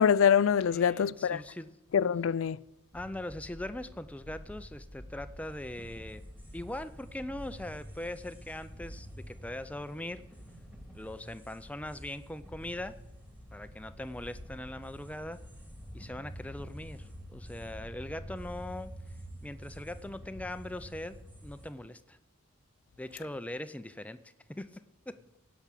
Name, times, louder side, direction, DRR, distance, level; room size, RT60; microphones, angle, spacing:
voice 1, 0.0-1.4 1.9-2.6, left 7 dB, 65° left, 0.3 m, -24 dB
voice 2, 0.7-1.8 2.9-6.2 6.5-10.3 10.9-13.0 13.5-15.4 15.9-18.9 19.4-22.2 23.0-25.2, left 1 dB, 5° left, 0.4 m, -41 dB
sound 1, 2.9-21.7, equal, 10° right, 2.0 m, -47 dB
16.5 x 6.0 x 8.3 m
head